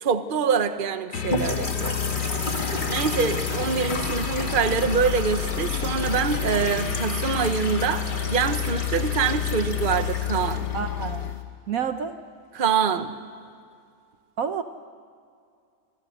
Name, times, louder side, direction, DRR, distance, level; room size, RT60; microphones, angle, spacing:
voice 1, 0.0-2.0 2.9-10.7 12.5-13.1, right 6 dB, 35° right, 9 dB, 1.1 m, -25 dB
sound 1, 1.1-11.5, left 11 dB, 80° left, 1.5 m, -30 dB
sound 2, 1.2-11.4, left 1 dB, 30° left, 2.1 m, -32 dB
voice 2, 10.7-11.3 11.7-12.2 14.4-14.6, right 7 dB, 60° right, 9 dB, 1.2 m, -29 dB
26.5 x 25.5 x 6.5 m, 2.3 s
omnidirectional pair, 1.8 m